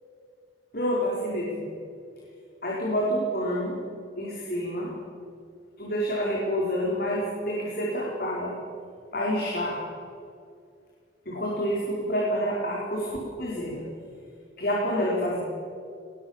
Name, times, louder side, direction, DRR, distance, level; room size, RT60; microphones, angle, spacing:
voice 1, 0.7-1.6 2.6-3.8 4.2-4.9 5.8-8.5 9.1-9.8 11.3-13.8 14.6-15.4, equal, 50° left, -4 dB, 4.7 m, -28 dB
23.5 x 20.0 x 7.3 m, 2.4 s
head